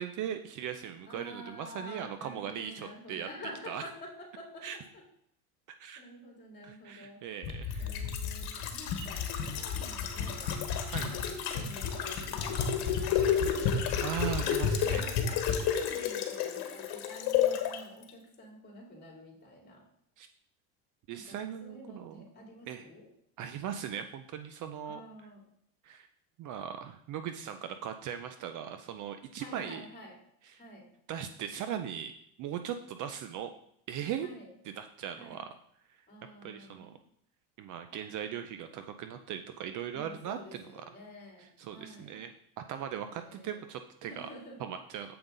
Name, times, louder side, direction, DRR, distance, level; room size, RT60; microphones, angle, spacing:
voice 1, 0.0-3.3 3.7-3.9 4.6-4.8 5.7-6.0 6.6-8.0 10.9-11.1 13.1-13.5 14.0-15.1 20.2-20.3 21.1-22.2 22.7-22.9 23.4-25.0 25.8-26.1 26.4-29.9 30.4-30.6 31.1-32.1 32.4-33.5 33.9-34.3 34.6-35.5 35.9-36.0 36.4-37.0 37.6-40.8 41.4-44.3 44.6-45.2, right 9 dB, 45° right, 9 dB, 0.6 m, -39 dB
voice 2, 1.1-4.7 6.0-7.2 7.8-10.5 10.9-14.0 14.9-19.8 21.1-23.1 24.8-25.4 29.4-30.1 30.6-30.8 34.2-34.5 35.2-35.4 36.1-37.0 39.9-41.5 41.7-42.2 43.1-43.6 44.0-44.6, left 1 dB, 20° left, -1 dB, 3.0 m, -49 dB
sound 1, 7.4-17.8 18.1-18.2, left 7 dB, 55° left, 1.5 m, -31 dB
7.8 x 5.3 x 3.9 m, 0.71 s
supercardioid pair, 95°, 45 cm